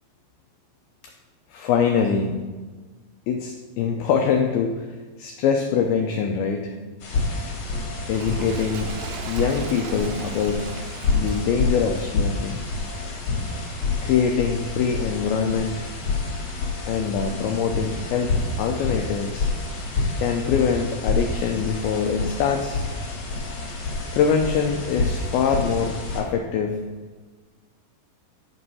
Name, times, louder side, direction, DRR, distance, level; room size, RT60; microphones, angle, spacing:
voice 1, 1.5-2.4 3.3-4.9 5.2-6.8 8.1-8.9 9.3-10.7 11.2-12.6 14.0-15.9 16.9-19.5 20.2-22.9 24.1-26.8, left 6 dB, 90° left, 4 dB, 2.1 m, -24 dB
sound 1, 7.0-26.2, left 3 dB, 45° left, 2.5 m, -28 dB
Toilet flush, 8.0-13.5 14.2-14.3, right 8 dB, 85° right, 2.5 m, -41 dB
10.0 x 5.4 x 5.5 m, 1.4 s
omnidirectional pair, 5.1 m